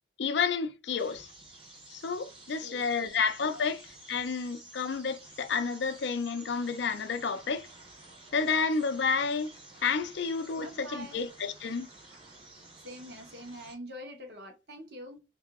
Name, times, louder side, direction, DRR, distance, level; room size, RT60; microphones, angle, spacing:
voice 1, 0.2-1.3 1.9-3.8 4.1-7.7 8.3-9.5 9.8-11.9, left 5 dB, 65° left, 0.4 m, -30 dB
sound 1, 1.0-13.8, right 2 dB, 30° right, 0.9 m, -52 dB
voice 2, 2.5-3.2 3.5-3.7 10.6-11.3 12.1-12.2 12.8-15.2, equal, 55° right, 1.0 m, -45 dB
2.8 x 2.7 x 3.5 m
head